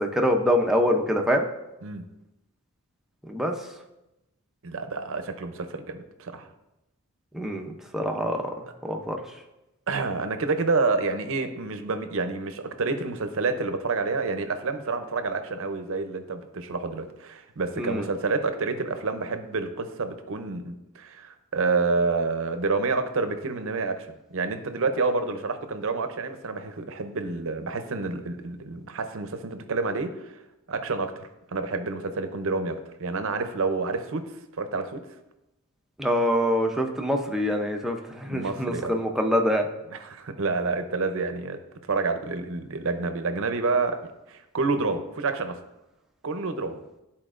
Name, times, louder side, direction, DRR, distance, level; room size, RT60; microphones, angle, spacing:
voice 1, 0.0-1.5 3.3-3.5 7.3-8.4 8.8-9.2 17.8-18.1 36.0-39.7, equal, ahead, 2 dB, 0.6 m, -25 dB
voice 2, 4.6-6.5 9.9-24.1 24.3-30.4 30.7-34.2 34.6-35.0 38.2-39.0 39.9-41.6 41.9-44.0 44.3-45.6 46.2-46.8, right 3 dB, 65° right, 8 dB, 0.6 m, -28 dB
12.0 x 4.2 x 2.5 m, 0.93 s
head